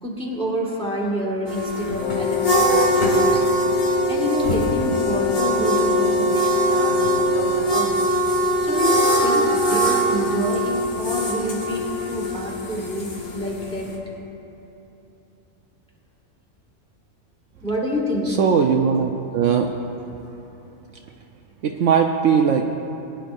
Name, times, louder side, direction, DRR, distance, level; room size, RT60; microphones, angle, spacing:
voice 1, 0.0-3.5 4.1-8.1 8.6-14.0 17.6-18.4, equal, 5° left, -3 dB, 1.6 m, -28 dB
sound 1, 1.5-13.9, equal, 70° left, 1.8 m, -22 dB
Wind instrument woodwind instrument, 2.0-7.7, left 4 dB, 30° left, 0.7 m, -27 dB
voice 2, 18.3-19.7 21.6-22.7, right 7 dB, 65° right, 2 dB, 0.9 m, -19 dB
20.5 x 10.0 x 2.6 m, 2.9 s
omnidirectional pair, 1.5 m